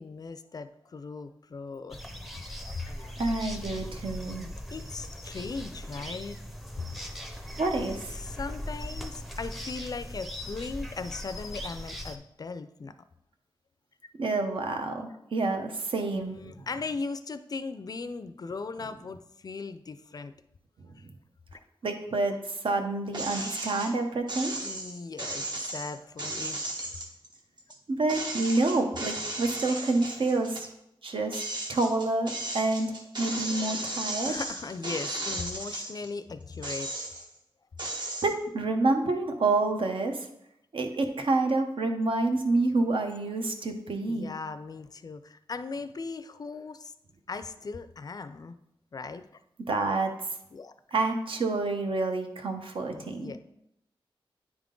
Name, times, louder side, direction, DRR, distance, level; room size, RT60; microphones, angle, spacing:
voice 1, 0.0-2.0 2.7-3.1 4.2-6.4 6.8-7.0 8.1-12.9 16.1-20.3 20.9-21.1 24.6-26.6 34.2-36.9 44.1-46.9 47.3-48.5 48.9-49.3 50.5-50.7 52.9-53.4, left 4 dB, 45° left, 11 dB, 0.4 m, -38 dB
sound 1, 1.9-12.2, left 1 dB, ahead, 0.6 m, -39 dB
voice 2, 3.2-4.4 7.6-8.2 14.2-16.3 21.8-24.5 27.9-30.7 31.0-31.4 31.7-32.9 33.2-34.4 37.9-40.3 40.7-44.3 49.7-50.1 50.9-53.3, right 3 dB, 65° right, 5 dB, 0.8 m, -28 dB
sound 2, 23.1-23.9 24.3-27.8 28.1-30.7 31.1-36.1 36.5-37.4 37.8-38.3, right 2 dB, 50° right, 1.1 m, -35 dB
9.6 x 3.6 x 3.8 m, 0.79 s
wide cardioid pair, 105°, 9 cm